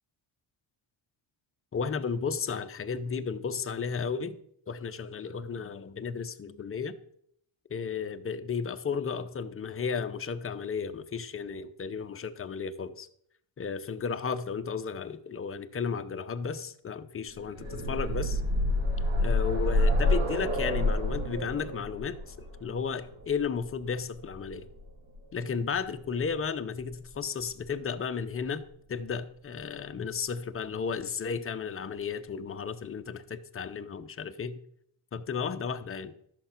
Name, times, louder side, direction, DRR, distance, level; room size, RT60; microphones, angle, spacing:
voice 1, 1.7-4.4 4.7-7.0 7.7-13.1 13.6-18.4 19.2-22.3 22.6-24.7 25.3-28.6 28.9-34.6 35.1-36.1, left 6 dB, 30° left, 8 dB, 0.7 m, -34 dB
sound 1, 17.3-25.1 26.3-26.4 26.8-26.9, left 1 dB, 85° right, 5.1 m, -28 dB
13.5 x 6.7 x 5.8 m, 0.68 s
cardioid pair, 155°, 46 cm